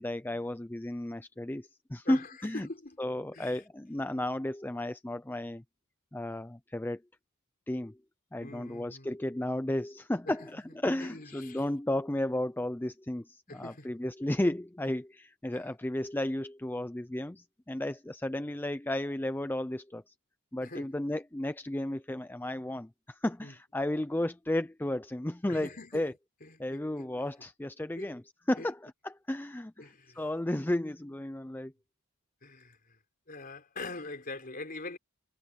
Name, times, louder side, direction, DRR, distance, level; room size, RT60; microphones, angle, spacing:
voice 1, 0.0-2.7 3.0-5.6 6.1-7.0 7.7-8.0 8.3-20.1 20.5-26.1 26.6-28.2 28.5-31.7, left 1 dB, 10° left, 0.4 m, -33 dB
voice 2, 2.0-3.0 3.3-3.6 8.4-9.1 10.3-10.4 11.0-11.6 13.5-13.9 15.5-15.6 20.6-20.9 23.4-23.5 25.5-26.0 26.4-27.2 28.0-28.1 28.6-28.7 29.8-30.2 32.4-33.0 33.3-35.0, left 2 dB, 40° left, 3.9 m, -44 dB
head